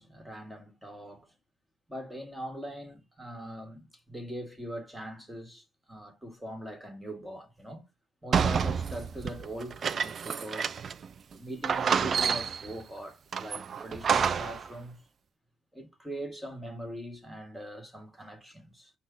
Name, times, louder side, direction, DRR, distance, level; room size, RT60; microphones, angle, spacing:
voice 1, 0.0-1.3 1.9-7.9 8.2-10.8 11.3-15.0 15.7-18.9, right 1 dB, 10° right, 1.7 m, -41 dB
sound 1, 8.3-11.1 11.3-11.4 11.6-12.7 13.3-14.7, right 6 dB, 50° right, 0.3 m, -29 dB
5.4 x 2.3 x 3.8 m
supercardioid pair, 75°, 0 cm